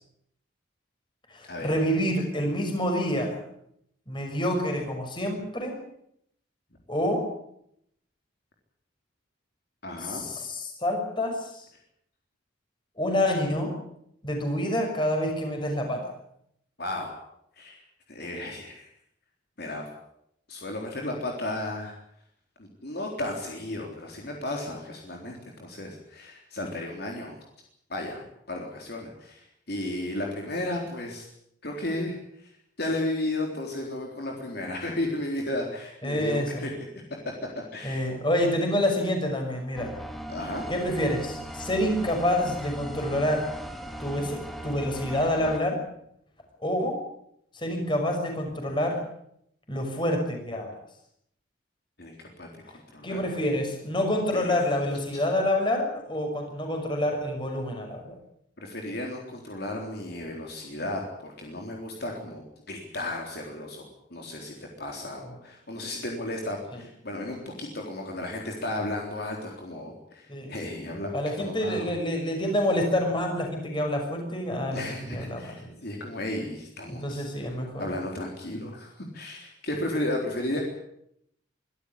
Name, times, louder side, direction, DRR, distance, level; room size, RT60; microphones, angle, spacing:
voice 1, 1.3-3.4 4.1-5.7 6.9-7.2 10.0-11.7 13.0-13.7 14.2-16.1 36.0-36.7 37.8-39.9 40.7-43.5 44.0-45.8 46.6-47.0 47.5-49.0 49.7-50.7 53.0-58.2 70.3-70.5 71.1-75.7 76.9-77.9, left 1 dB, 25° left, 3 dB, 6.1 m, -27 dB
voice 2, 9.8-10.3 16.8-17.2 17.5-17.8 18.1-18.9 19.6-19.8 20.5-22.0 22.6-27.4 27.9-31.3 31.6-32.5 32.8-36.7 37.7-38.1 40.3-40.7 52.0-52.5 52.9-53.2 54.3-54.9 55.1-55.2 58.6-71.1 71.4-71.9 74.7-80.6, left 1 dB, 50° left, 1 dB, 3.9 m, -34 dB
sound 1, 39.7-45.6, right 1 dB, ahead, 2.2 m, -38 dB
24.5 x 13.5 x 9.8 m, 0.74 s
head